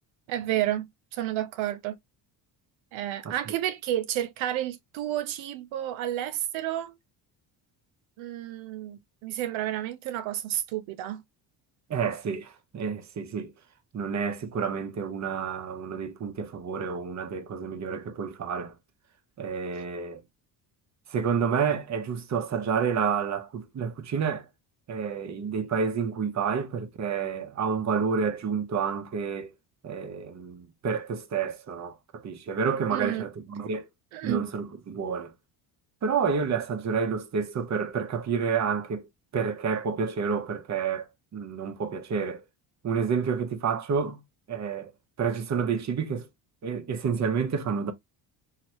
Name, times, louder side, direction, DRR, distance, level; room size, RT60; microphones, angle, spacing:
voice 1, 0.3-1.9 2.9-6.9 8.2-11.2 32.9-33.2 34.1-34.5, right 13 dB, 80° right, 0.6 m, -31 dB
voice 2, 11.9-13.5 13.9-18.7 19.4-20.2 21.1-24.4 24.9-29.5 29.8-33.8 34.2-35.3 36.0-39.1 39.3-42.4 42.8-44.2 44.5-44.9 45.2-46.3 46.6-47.9, right 6 dB, 35° right, 0.8 m, -29 dB
3.0 x 2.9 x 2.8 m
supercardioid pair, 85°, 47 cm